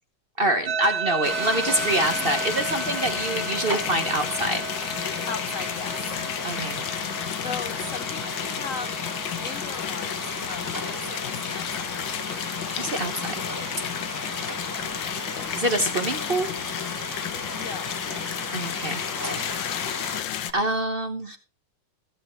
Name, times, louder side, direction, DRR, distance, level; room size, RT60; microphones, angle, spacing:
voice 1, 0.4-4.6 4.9-5.1 6.4-6.8 12.8-13.4 15.5-16.5 18.5-19.6 20.5-21.4, right 1 dB, 40° right, 7 dB, 0.9 m, -26 dB
sound 1, 0.7-9.7, right 4 dB, 75° right, 1.9 m, -35 dB
sound 2, 1.2-20.2, left 2 dB, 10° left, 0.9 m, -34 dB
sound 3, 1.8-20.5, left 11 dB, 70° left, 1.5 m, -33 dB
voice 2, 5.3-6.1 7.4-8.9 9.4-11.9 17.5-17.9, left 4 dB, 85° left, 11 dB, 0.7 m, -37 dB
15.0 x 8.0 x 4.4 m, 0.33 s
omnidirectional pair, 2.3 m